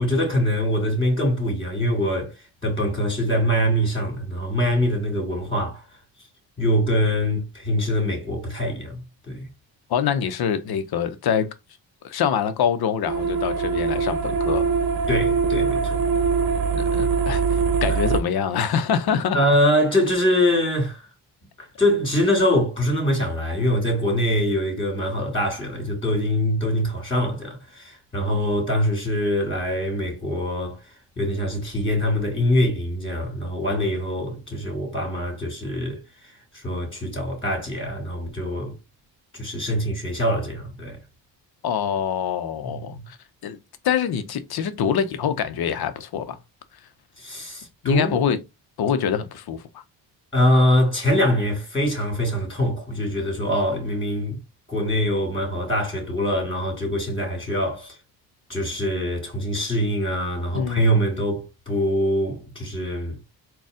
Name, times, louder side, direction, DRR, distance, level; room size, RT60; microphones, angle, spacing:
voice 1, 0.0-2.3 2.6-5.8 6.6-9.5 15.1-16.0 19.3-21.0 21.6-30.8 31.2-36.0 36.5-38.8 39.3-41.0 47.2-48.2 50.3-54.4 54.7-58.0 58.5-63.2, equal, 10° left, 2.5 m, -23 dB
voice 2, 9.9-11.5 12.0-14.7 16.7-19.4 41.6-43.2 43.4-43.6 43.8-46.4 47.8-48.4 48.8-49.8 60.5-61.0, left 8 dB, 55° left, 0.8 m, -25 dB
sound 1, 13.1-18.2, right 5 dB, 50° right, 1.0 m, -22 dB
4.0 x 2.3 x 3.6 m
cardioid pair, 80°, 44 cm